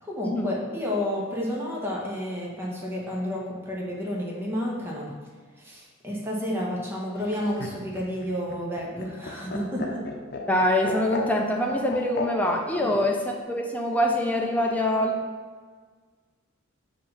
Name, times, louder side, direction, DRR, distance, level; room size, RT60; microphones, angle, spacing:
voice 1, 0.0-5.2 5.6-10.0 12.8-13.0, left 1 dB, 10° right, -4 dB, 1.2 m, -31 dB
Laughter, 7.2-12.9 14.2-14.8, left 3 dB, 55° left, 0.8 m, -35 dB
voice 2, 10.5-15.1, left 1 dB, 5° left, 0 dB, 0.5 m, -24 dB
7.6 x 2.8 x 5.6 m, 1.5 s
head